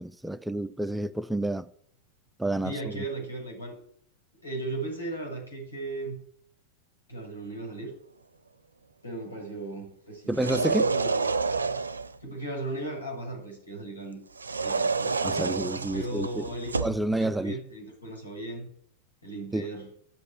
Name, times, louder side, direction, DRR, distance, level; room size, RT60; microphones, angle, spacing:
voice 1, 0.0-1.7 2.4-3.0 10.3-10.9 15.2-16.5 16.8-17.6 19.5-19.7, right 1 dB, 5° right, 0.5 m, -29 dB
voice 2, 2.6-3.8 4.4-6.2 7.1-8.0 9.0-11.3 12.2-14.2 14.6-15.2 15.9-16.7 17.1-18.7 19.2-19.9, right 2 dB, 80° left, 7.2 m, -36 dB
sound 1, 10.3-12.2 14.4-17.0, right 4 dB, 75° right, 0.6 m, -28 dB
13.5 x 8.2 x 8.7 m
figure-of-eight pair, 90°, 0 cm